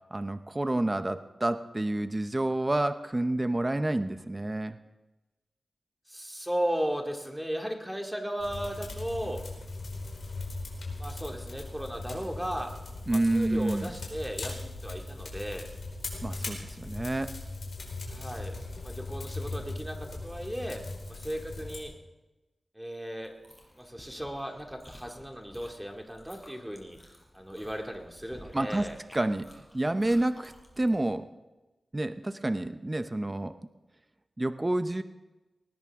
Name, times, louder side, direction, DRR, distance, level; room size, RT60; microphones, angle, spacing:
voice 1, 0.1-4.8 13.1-13.9 16.2-17.3 28.5-28.9 29.1-29.5 29.7-31.2 31.9-33.6 34.4-35.0, right 1 dB, 25° right, 10 dB, 0.7 m, -29 dB
voice 2, 6.1-9.4 11.0-12.7 13.1-15.6 18.1-18.6 18.8-20.8 21.1-21.9 22.7-23.3 23.8-27.0 27.3-29.0, equal, 5° right, 2 dB, 2.4 m, -36 dB
sound 1, 8.4-21.8, left 2 dB, 70° left, 4.8 m, -39 dB
Chewing mastication, 23.2-31.1, left 1 dB, 15° left, 5.7 m, -53 dB
20.0 x 19.0 x 3.7 m, 1.1 s
wide cardioid pair, 85°, 0 cm